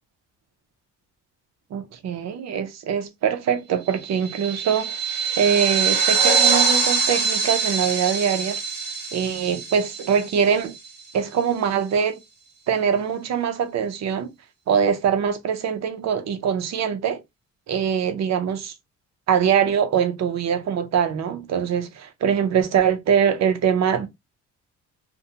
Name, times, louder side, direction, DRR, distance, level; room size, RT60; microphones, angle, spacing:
voice 1, 1.7-5.0 5.4-8.6 9.1-10.7 11.1-12.2 12.7-14.3 14.7-17.2 17.7-18.7 19.3-24.1, right 7 dB, 60° right, 0.7 m, -23 dB
sound 1, 4.0-10.9, right 5 dB, 35° right, 1.2 m, -23 dB
2.5 x 2.2 x 2.7 m
cardioid pair, 90°, 30 cm